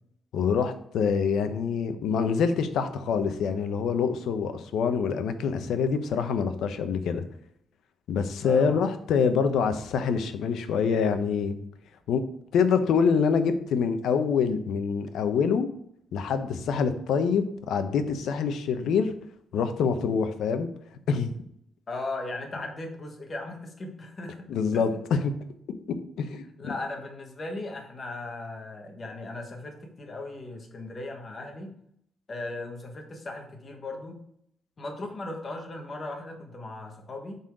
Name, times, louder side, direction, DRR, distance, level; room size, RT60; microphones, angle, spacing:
voice 1, 0.3-7.2 8.1-11.5 12.1-12.2 12.5-15.7 16.1-19.1 19.5-20.7 21.1-21.3 24.5-25.3 26.2-26.7, left 6 dB, 90° left, 9 dB, 0.8 m, -25 dB
voice 2, 8.4-8.8 21.9-24.9 26.6-31.7 32.3-34.2 34.8-37.4, left 2 dB, 30° left, 3 dB, 1.3 m, -37 dB
7.7 x 4.1 x 4.8 m, 0.72 s
wide cardioid pair, 170°, 0 cm